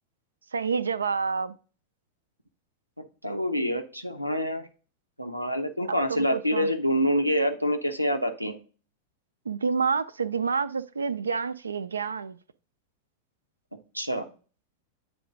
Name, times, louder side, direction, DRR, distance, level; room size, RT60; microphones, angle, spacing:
voice 1, 0.5-1.5 6.1-6.7 9.5-12.4, right 5 dB, 75° right, 0.4 m, -28 dB
voice 2, 3.2-4.7 5.2-8.6 13.9-14.3, equal, 90° left, 0.7 m, -26 dB
8.4 x 3.5 x 3.8 m
figure-of-eight pair, 90°, 0 cm